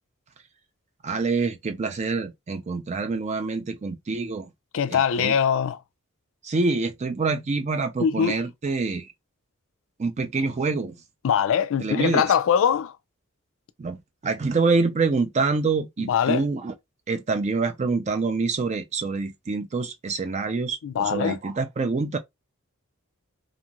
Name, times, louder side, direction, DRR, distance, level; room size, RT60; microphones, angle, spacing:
voice 1, 1.0-4.5 4.9-5.3 6.4-9.1 10.0-10.9 11.8-12.3 13.8-16.7 17.1-22.2, right 4 dB, 30° right, 0.4 m, -26 dB
voice 2, 4.7-5.8 8.0-8.4 11.2-12.9 16.0-16.4 20.8-21.4, left 8 dB, 65° left, 0.4 m, -22 dB
2.6 x 2.4 x 2.9 m
head